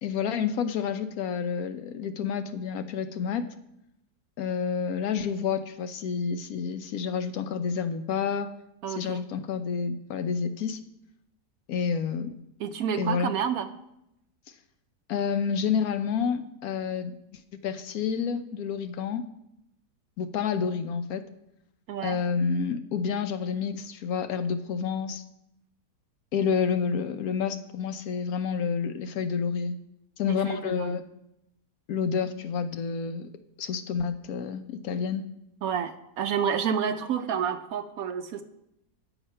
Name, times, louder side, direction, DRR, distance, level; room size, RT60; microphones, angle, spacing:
voice 1, 0.0-3.4 4.4-8.5 8.9-10.8 11.7-12.3 13.0-13.3 15.1-17.2 17.6-19.2 20.2-21.2 22.0-25.2 26.3-29.8 30.2-31.0 31.9-33.3 33.6-35.2, left 6 dB, 70° left, 9 dB, 1.0 m, -29 dB
voice 2, 8.8-9.2 12.6-13.7 21.9-22.2 30.4-31.0 35.6-38.4, right 7 dB, 70° right, 9 dB, 0.9 m, -29 dB
8.9 x 7.1 x 5.4 m, 0.84 s
omnidirectional pair, 1.7 m